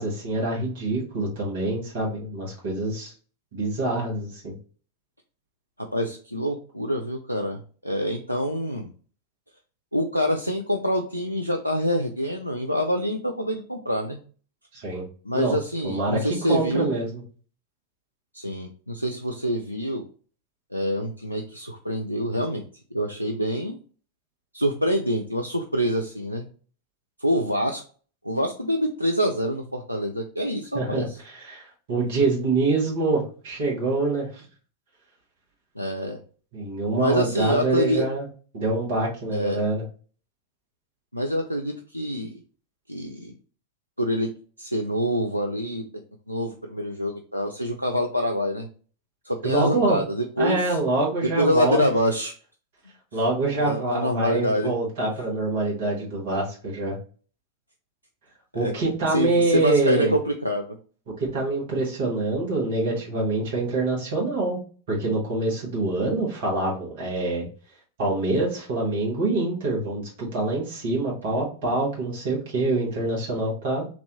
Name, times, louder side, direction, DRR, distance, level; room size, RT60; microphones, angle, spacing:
voice 1, 0.0-3.1 3.5-4.5 14.7-15.0 15.3-15.5 15.8-17.2 30.7-34.4 36.5-38.2 38.5-39.8 49.4-50.0 50.4-51.8 53.1-57.0 58.5-60.1 61.2-64.6 64.9-67.5 68.0-73.8, right 2 dB, 55° right, -4 dB, 1.5 m, -25 dB
voice 2, 5.8-8.9 9.9-14.2 15.3-16.9 18.3-20.0 20.7-22.6 22.9-23.8 24.5-26.4 27.2-27.8 28.2-31.1 35.8-36.2 37.0-38.0 39.3-39.6 41.1-42.3 42.9-43.4 44.0-44.3 44.6-45.8 46.3-48.7 49.2-50.8 51.2-52.3 53.6-54.7 58.6-58.7 59.1-60.7, equal, 90° left, 2 dB, 0.3 m, -26 dB
3.0 x 2.6 x 2.9 m, 0.40 s
figure-of-eight pair, 90°, 0 cm